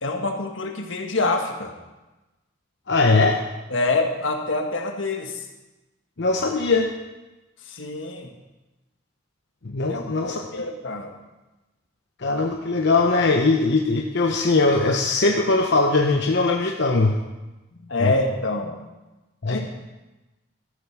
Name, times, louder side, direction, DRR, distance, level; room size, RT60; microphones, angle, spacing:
voice 1, 0.0-1.7 3.7-5.5 7.7-8.3 9.9-11.1 17.7-18.8 19.4-19.7, left 2 dB, 85° left, 4 dB, 1.5 m, -26 dB
voice 2, 2.9-3.4 6.2-6.9 9.6-10.7 12.2-17.2 18.0-18.1 19.4-19.7, left 3 dB, 65° left, 2 dB, 0.8 m, -20 dB
13.5 x 7.5 x 6.0 m, 1.1 s
head